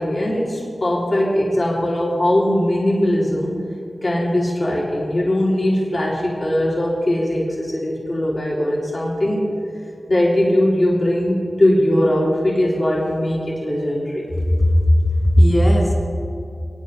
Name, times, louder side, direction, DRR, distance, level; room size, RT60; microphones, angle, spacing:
voice 1, 0.0-3.6 4.0-9.5 10.1-14.3, left 1 dB, 65° left, -6 dB, 2.7 m, -20 dB
voice 2, 14.6-14.9 15.2-15.9, equal, 40° left, -4 dB, 3.2 m, -14 dB
20.5 x 9.8 x 3.2 m, 2.6 s
cardioid pair, 40°, 0 cm